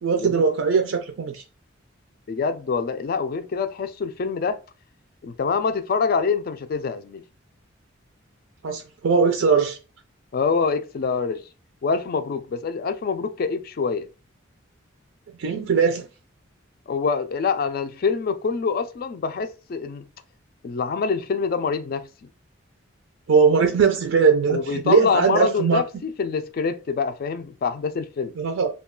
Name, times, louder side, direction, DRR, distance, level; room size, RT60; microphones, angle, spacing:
voice 1, 0.0-1.4 8.6-9.8 15.4-16.1 23.3-25.8 28.4-28.7, right 5 dB, 75° right, 0.4 m, -20 dB
voice 2, 2.3-4.6 5.2-7.2 10.3-11.4 11.8-14.1 16.9-20.0 20.6-22.1 24.5-28.3, left 5 dB, 45° left, 0.3 m, -25 dB
2.3 x 2.2 x 3.6 m
head